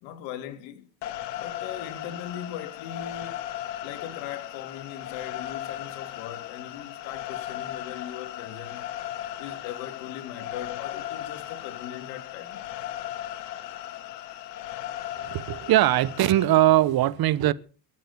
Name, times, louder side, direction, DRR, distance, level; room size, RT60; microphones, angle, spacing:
voice 1, 0.0-0.9 1.4-3.3 3.8-8.9 9.4-12.7, left 10 dB, 70° left, 2.8 m, -39 dB
sound 1, 1.0-16.5, left 13 dB, 85° left, 1.9 m, -37 dB
voice 2, 15.2-17.5, right 14 dB, 50° right, 1.2 m, -21 dB
22.5 x 7.7 x 6.9 m
hypercardioid pair, 85°, 48 cm